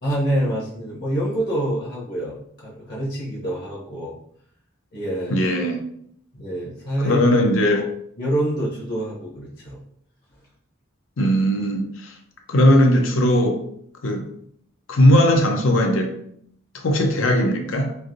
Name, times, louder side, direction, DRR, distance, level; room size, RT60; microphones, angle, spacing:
voice 1, 0.0-4.1 4.9-5.4 6.3-7.2 8.2-9.8, right 1 dB, 55° left, -4 dB, 0.8 m, -26 dB
voice 2, 5.3-5.8 7.0-7.8 11.2-12.1 12.5-13.6 14.0-14.3 14.9-16.2 16.7-18.0, equal, 90° left, 3 dB, 0.6 m, -18 dB
3.2 x 2.5 x 2.5 m, 0.68 s
head